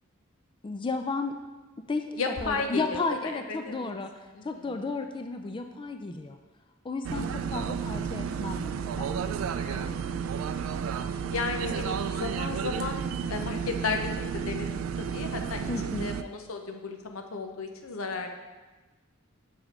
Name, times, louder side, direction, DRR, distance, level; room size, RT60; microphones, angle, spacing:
voice 1, 0.6-1.4 1.9-4.1 4.4-6.4 6.8-9.1 15.7-16.1, left 3 dB, 25° left, 6 dB, 0.3 m, -33 dB
voice 2, 2.2-3.9 4.3-4.8 7.1-7.5 9.6-9.9 11.3-13.0 13.3-18.3, left 4 dB, 85° left, 4 dB, 0.8 m, -34 dB
sound 1, 7.0-16.2, right 7 dB, 70° right, 0.3 m, -32 dB
6.0 x 5.0 x 5.3 m, 1.2 s
head